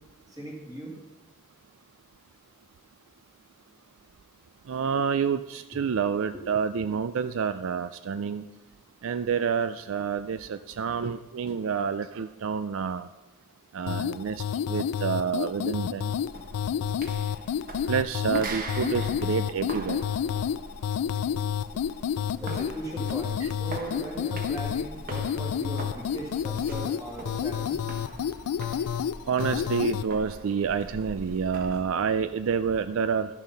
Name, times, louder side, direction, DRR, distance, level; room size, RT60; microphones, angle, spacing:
voice 1, 0.3-0.9 6.3-6.4 21.7-21.8 22.4-27.8, right 1 dB, 15° right, -1 dB, 2.4 m, -38 dB
voice 2, 4.7-8.4 9.0-13.1 13.7-16.1 17.9-20.0 23.4-23.5 29.3-33.3, right 6 dB, 65° right, 12 dB, 0.4 m, -28 dB
sound 1, 13.9-30.1, left 8 dB, 90° left, 0.3 m, -30 dB
sound 2, 16.1-31.9, right 2 dB, 40° right, 1.2 m, -42 dB
12.5 x 7.1 x 5.5 m, 1.1 s
head